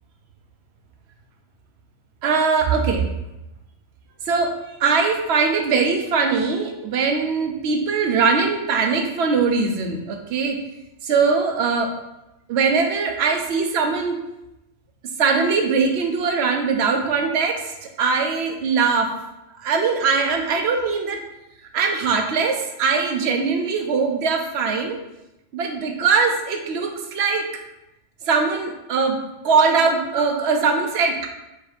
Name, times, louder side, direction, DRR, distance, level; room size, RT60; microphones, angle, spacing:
voice 1, 2.2-3.1 4.3-4.5 4.8-10.6 11.0-11.9 12.5-14.2 15.2-19.1 19.6-21.2 21.7-25.0 25.5-27.5 28.2-31.3, right 5 dB, 65° right, 4 dB, 0.9 m, -21 dB
4.9 x 2.6 x 4.1 m, 0.91 s
omnidirectional pair, 1.2 m